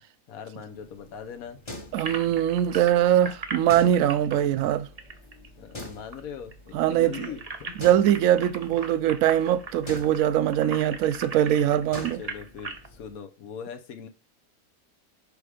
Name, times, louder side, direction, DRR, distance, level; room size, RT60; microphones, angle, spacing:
voice 1, 0.3-2.2 5.6-7.8 11.8-14.1, left 7 dB, 75° left, 1.3 m, -41 dB
sound 1, 0.5-13.2, left 1 dB, 25° left, 0.9 m, -46 dB
sound 2, 1.9-5.9 6.1-6.2 6.5-12.9, right 4 dB, 35° right, 0.6 m, -39 dB
voice 2, 1.9-4.9 6.7-7.3 7.8-12.2, right 11 dB, 75° right, 1.0 m, -22 dB
6.8 x 4.8 x 4.9 m
omnidirectional pair, 1.5 m